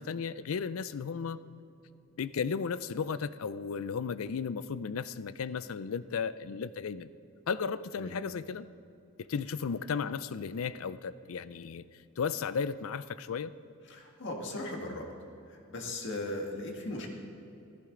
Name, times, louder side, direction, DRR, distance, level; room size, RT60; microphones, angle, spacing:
voice 1, 0.0-1.4 2.2-7.1 7.5-8.7 9.3-11.9 12.2-13.5, left 6 dB, 85° left, 15 dB, 0.4 m, -34 dB
voice 2, 13.8-15.1 15.5-17.1, left 2 dB, 60° left, 1 dB, 1.8 m, -38 dB
15.5 x 14.5 x 3.8 m, 2.8 s
head